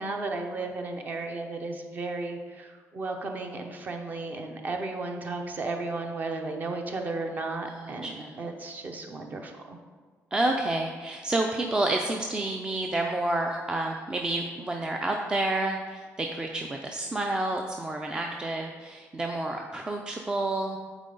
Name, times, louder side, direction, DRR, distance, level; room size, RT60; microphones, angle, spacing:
voice 1, 0.0-9.8, right 3 dB, 35° right, 4 dB, 0.7 m, -34 dB
voice 2, 7.6-8.4 10.3-20.8, right 2 dB, 15° right, 2 dB, 0.4 m, -29 dB
9.0 x 4.1 x 3.9 m, 1.5 s
cardioid pair, 165°, 5 cm